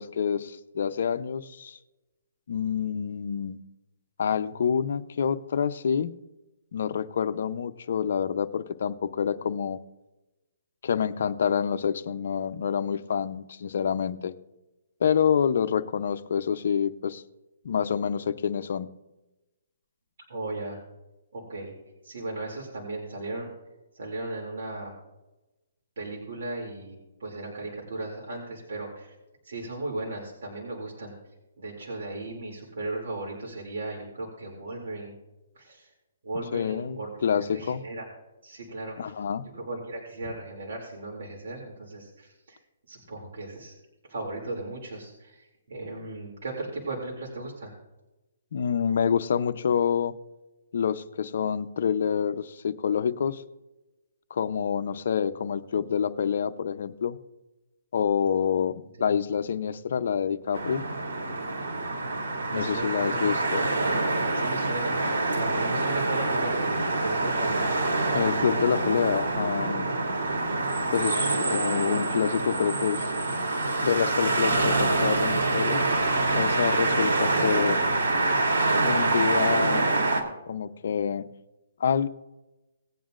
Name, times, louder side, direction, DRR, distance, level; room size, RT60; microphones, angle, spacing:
voice 1, 0.0-1.8 2.5-3.6 4.2-6.1 6.7-9.8 10.8-14.3 15.0-17.2 17.6-18.9 36.5-37.8 39.0-39.5 48.5-50.1 50.7-53.4 54.3-57.2 57.9-60.9 62.5-63.7 68.1-69.9 70.9-73.1 73.8-75.8 76.3-77.8 78.8-79.9 80.5-81.3 81.8-82.1, left 7 dB, 55° left, 10 dB, 0.7 m, -27 dB
voice 2, 20.3-20.8 21.3-21.7 22.0-23.5 23.9-24.9 26.0-29.1 29.4-31.1 31.6-35.1 35.6-35.9 36.2-38.1 38.4-39.1 39.4-42.6 42.9-43.7 44.1-47.7 59.0-59.2 62.5-63.3 63.8-63.9 64.3-65.0 65.3-67.7, right 2 dB, 65° right, -2 dB, 2.7 m, -36 dB
sound 1, 60.5-80.2, right 2 dB, 85° right, 2.7 m, -26 dB
18.5 x 9.2 x 2.5 m, 1.0 s
hypercardioid pair, 165°, 0 cm